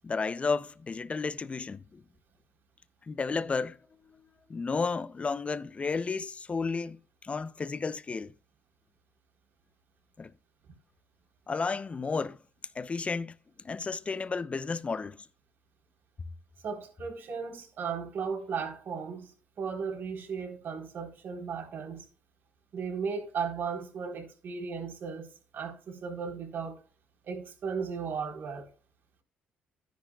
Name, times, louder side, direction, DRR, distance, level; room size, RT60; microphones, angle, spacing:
voice 1, 0.0-2.0 3.0-3.8 4.0-8.3 10.2-10.3 11.5-12.4 12.7-13.3 13.6-15.3, left 4 dB, 30° left, 0.7 m, -32 dB
voice 2, 16.6-19.3 19.6-22.0 22.7-25.3 25.5-26.8 27.3-28.7, right 6 dB, 65° right, 4.0 m, -36 dB
13.0 x 10.5 x 2.4 m
cardioid pair, 85°, 4 cm